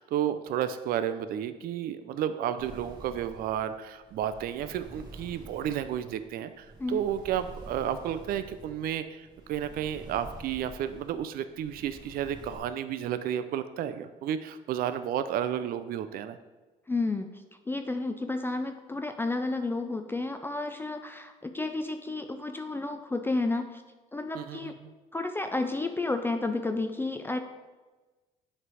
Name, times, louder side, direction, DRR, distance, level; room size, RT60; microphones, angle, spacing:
voice 1, 0.0-16.4 24.3-24.7, right 10 dB, 60° right, 11 dB, 0.4 m, -32 dB
sound 1, 2.6-12.6, right 2 dB, 25° right, 1.7 m, -48 dB
voice 2, 16.9-17.3 17.7-23.8 24.1-24.7 25.1-27.4, left 2 dB, 15° left, 6 dB, 0.3 m, -31 dB
7.4 x 3.3 x 4.7 m, 1.2 s
cardioid pair, 110°, 17 cm